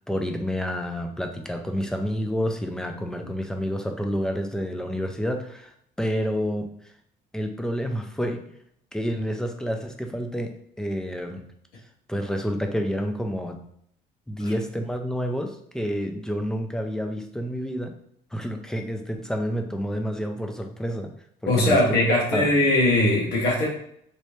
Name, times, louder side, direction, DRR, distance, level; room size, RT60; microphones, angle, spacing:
voice 1, 0.0-5.7 6.0-6.7 7.3-8.4 8.9-11.4 12.1-13.6 14.3-17.9 18.3-21.1 21.4-21.8 22.1-22.5, equal, 5° left, 4 dB, 0.4 m, -29 dB
voice 2, 21.4-23.7, left 1 dB, 85° left, -4 dB, 1.1 m, -20 dB
3.2 x 3.1 x 2.7 m, 0.70 s
cardioid pair, 110°, 17 cm